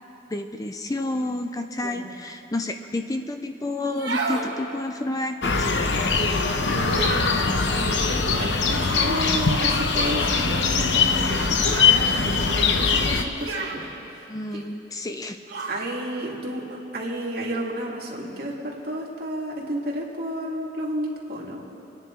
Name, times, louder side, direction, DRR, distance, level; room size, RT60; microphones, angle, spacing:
voice 1, 0.3-5.9 11.5-11.7 14.3-15.4, left 2 dB, 20° left, 7 dB, 0.5 m, -30 dB
sound 1, 3.8-4.5 6.7-7.4 9.9-10.2 11.6-12.0 13.4-13.8 15.5-15.8, right 3 dB, 85° right, 2.7 m, -30 dB
sound 2, 5.4-13.2, left 4 dB, 75° left, 0.9 m, -22 dB
voice 2, 6.5-13.9 14.6-14.7 15.7-16.6 16.9-21.6, right 1 dB, 55° right, -3 dB, 2.5 m, -32 dB
27.5 x 9.9 x 4.6 m, 2.8 s
head